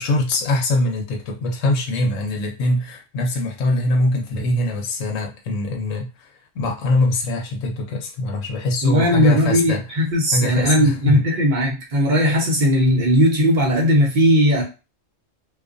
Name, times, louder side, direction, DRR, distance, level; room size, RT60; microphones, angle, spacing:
voice 1, 0.0-6.3 6.6-9.8 10.3-11.3 12.9-13.0, left 1 dB, 80° left, 2 dB, 1.0 m, -23 dB
voice 2, 8.8-14.6, equal, 40° right, -2 dB, 0.9 m, -17 dB
2.5 x 2.3 x 2.5 m, 0.30 s
omnidirectional pair, 1.3 m